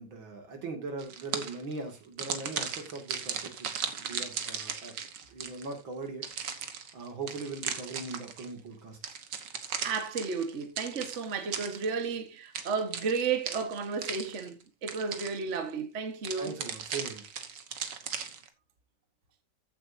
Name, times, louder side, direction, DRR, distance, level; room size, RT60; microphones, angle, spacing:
voice 1, 0.0-5.0 5.3-9.0 16.4-17.2, right 3 dB, 85° right, 3.1 m, -40 dB
sound 1, 1.0-1.7 2.2-5.8 6.2-8.5 9.0-12.1 12.5-14.6 14.9-15.6 16.2-18.5, right 7 dB, 65° right, 1.9 m, -37 dB
voice 2, 9.8-16.6, right 5 dB, 40° right, 1.6 m, -33 dB
14.5 x 7.9 x 2.7 m
omnidirectional pair, 2.1 m